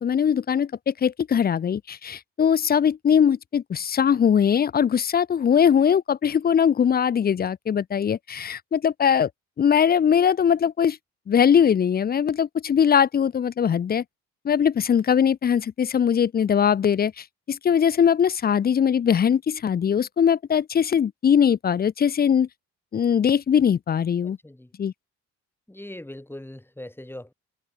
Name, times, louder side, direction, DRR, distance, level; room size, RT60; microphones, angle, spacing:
voice 1, 0.0-9.3 9.6-11.0 11.3-14.0 14.4-22.5 22.9-24.4 24.8-24.9, left 8 dB, 30° left, 0.5 m, -21 dB
voice 2, 24.2-24.7 25.7-27.3, left 1 dB, 5° left, 7.1 m, -40 dB
cardioid pair, 90°, 30 cm